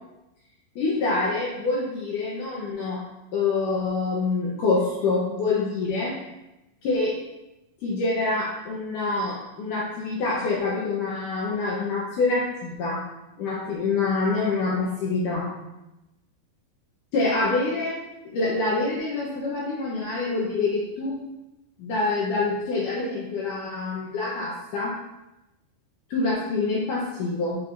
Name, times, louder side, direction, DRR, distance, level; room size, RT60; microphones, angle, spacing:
voice 1, 0.8-3.0 3.3-6.1 6.8-7.1 7.8-13.0 13.4-15.5 17.1-18.0 18.3-21.2 21.8-24.9 26.1-27.6, left 3 dB, 75° left, -5 dB, 1.9 m, -26 dB
7.0 x 6.1 x 2.5 m, 0.95 s
omnidirectional pair, 4.9 m